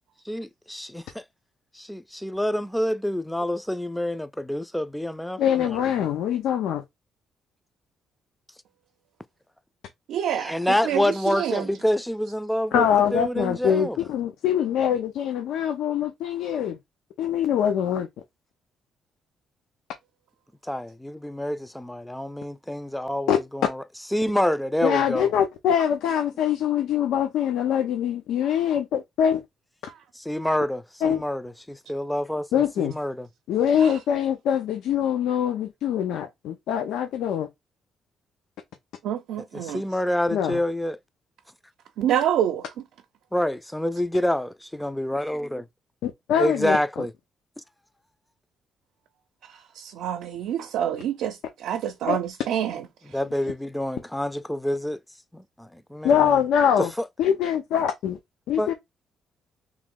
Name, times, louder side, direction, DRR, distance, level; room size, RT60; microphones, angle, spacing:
voice 1, 0.3-1.2 1.7-6.1 10.3-12.9 13.1-14.0 20.6-23.8 24.1-25.3 30.2-33.3 39.5-41.0 43.3-45.6 46.4-47.1 53.0-55.0 55.3-56.4 57.0-57.1 58.6-58.7, left 1 dB, 5° left, 0.4 m, -27 dB
voice 2, 5.4-6.8 12.7-16.8 17.2-18.1 23.3-23.4 24.8-29.4 31.0-31.2 32.5-32.9 33.5-37.5 40.3-40.6 46.0-46.8 52.1-52.2 56.0-56.9 57.2-58.2 58.5-58.7, left 9 dB, 85° left, 0.6 m, -23 dB
voice 3, 10.1-10.5 10.8-11.6 33.8-33.9 39.0-39.8 42.0-42.6 49.8-51.4 51.6-52.8, right 10 dB, 85° right, 0.6 m, -26 dB
3.1 x 3.0 x 3.7 m
cardioid pair, 90°, 0 cm